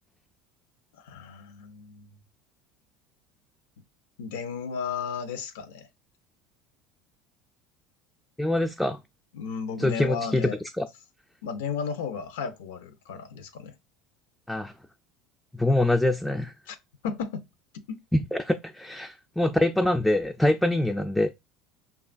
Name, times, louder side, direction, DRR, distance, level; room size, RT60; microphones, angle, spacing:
voice 1, 0.9-2.1 4.2-5.9 9.3-10.6 11.4-13.8 16.7-16.8 17.0-17.5 17.7-18.0, left 6 dB, 85° left, 0.5 m, -34 dB
voice 2, 8.4-9.0 9.8-10.5 10.8-10.9 14.5-14.7 15.5-16.5 18.3-21.3, left 1 dB, 5° left, 0.3 m, -24 dB
5.1 x 2.3 x 2.4 m
supercardioid pair, 100°, 0 cm